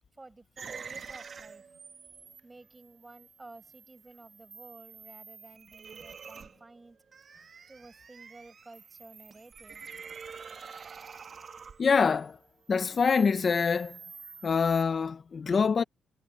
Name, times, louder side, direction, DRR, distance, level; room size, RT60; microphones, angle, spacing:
voice 1, 0.2-1.6 2.4-7.0 7.7-9.8, right 2 dB, 20° right, 6.1 m, -52 dB
sound 1, 0.6-12.3 12.6-14.8, right 6 dB, 45° right, 1.3 m, -48 dB
voice 2, 11.8-12.4 12.7-14.0 14.4-15.8, left 5 dB, 40° left, 0.8 m, -25 dB
cardioid pair, 90°, 0 cm